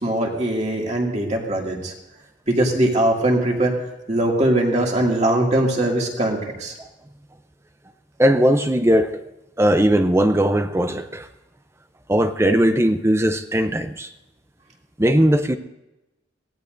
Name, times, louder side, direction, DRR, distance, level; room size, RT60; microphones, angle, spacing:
voice 1, 0.0-1.9 2.5-3.8 4.1-6.7, right 1 dB, 35° right, 2.3 m, -21 dB
voice 2, 8.2-9.2 9.6-11.3 12.1-14.1 15.0-15.6, equal, 15° right, 0.5 m, -18 dB
22.5 x 17.0 x 2.6 m
head